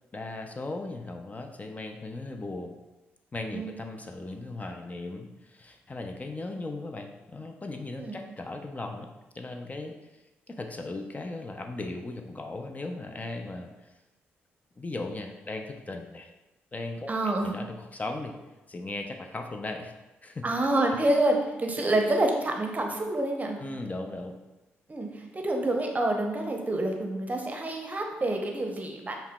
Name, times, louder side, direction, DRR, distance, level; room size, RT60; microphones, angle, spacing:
voice 1, 0.1-2.8 3.3-9.1 9.3-10.0 10.5-13.9 14.8-16.3 16.7-17.1 17.4-18.3 18.7-19.9 20.2-20.4 21.8-21.9 23.5-24.3, left 2 dB, 25° left, 4 dB, 0.4 m, -37 dB
voice 2, 17.1-17.5 20.4-23.6 24.9-29.2, right 1 dB, 30° right, 2 dB, 0.7 m, -27 dB
5.4 x 2.1 x 2.2 m, 1.0 s
hypercardioid pair, 40°, 6 cm